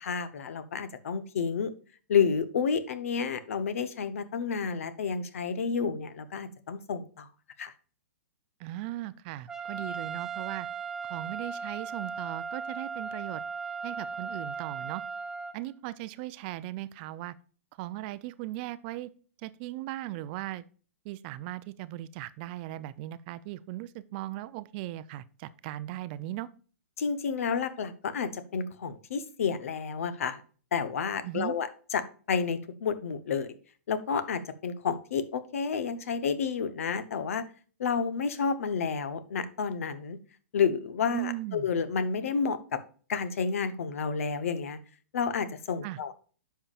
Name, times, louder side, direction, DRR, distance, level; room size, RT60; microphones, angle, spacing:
voice 1, 0.0-1.7 2.1-7.3 7.6-7.7 27.0-30.4 30.7-32.0 32.3-33.5 33.9-37.4 37.8-40.2 40.5-42.8 43.1-44.8 45.1-46.1, left 6 dB, 65° left, 12 dB, 0.9 m, -30 dB
voice 2, 8.6-10.7 11.1-13.4 13.8-15.0 15.5-17.3 17.8-19.1 19.4-20.6 21.0-26.5 31.2-31.5 41.1-41.7 45.8-46.0, right 15 dB, 40° right, 16 dB, 0.5 m, -38 dB
Trumpet, 9.5-15.5, right 5 dB, 5° right, 0.7 m, -37 dB
10.0 x 5.7 x 2.4 m, 0.39 s
hypercardioid pair, 120°, 8 cm